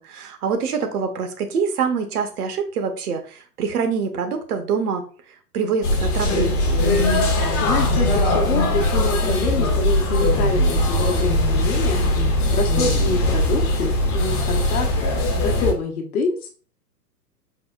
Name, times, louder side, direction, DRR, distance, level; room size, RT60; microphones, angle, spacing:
voice 1, 0.0-6.9, right 6 dB, 65° right, 6 dB, 0.8 m, -25 dB
sound 1, 5.8-15.7, left 1 dB, 30° left, 0.7 m, -20 dB
voice 2, 7.6-12.2 12.5-14.9 15.3-16.5, left 4 dB, 60° left, 3 dB, 0.9 m, -26 dB
4.7 x 2.1 x 2.3 m, 0.39 s
figure-of-eight pair, 110°, 49 cm